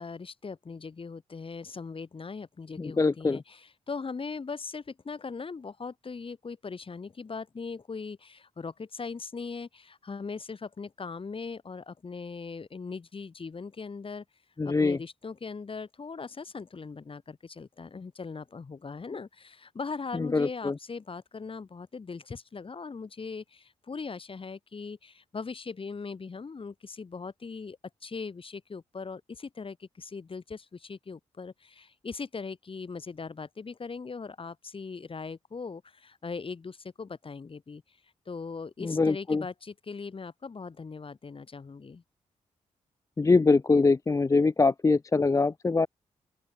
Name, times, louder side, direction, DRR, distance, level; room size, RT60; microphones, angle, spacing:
voice 1, 0.0-14.2 14.6-38.0 38.3-42.0, left 4 dB, 45° left, 2.5 m, -40 dB
voice 2, 2.8-3.4 14.6-15.0 20.1-20.7 38.8-39.4 43.2-45.9, left 3 dB, 25° left, 0.5 m, -23 dB
open air
supercardioid pair, 50°, 13 cm